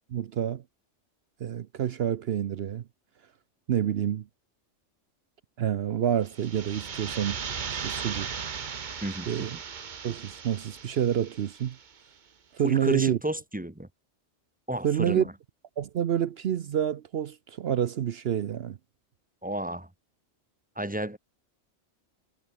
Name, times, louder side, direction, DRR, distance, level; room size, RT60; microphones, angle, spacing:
voice 1, 0.1-0.6 1.4-2.8 3.7-4.3 5.6-7.4 7.8-8.4 9.3-9.6 10.0-11.8 12.5-13.2 14.8-15.3 15.8-18.8, right 9 dB, 60° right, 0.9 m, -28 dB
sound 1, 6.2-11.9, right 6 dB, 45° right, 1.0 m, -37 dB
voice 2, 12.6-13.9 14.7-15.3 19.4-19.9 20.8-21.2, right 1 dB, 5° right, 1.3 m, -32 dB
omnidirectional pair, 1.2 m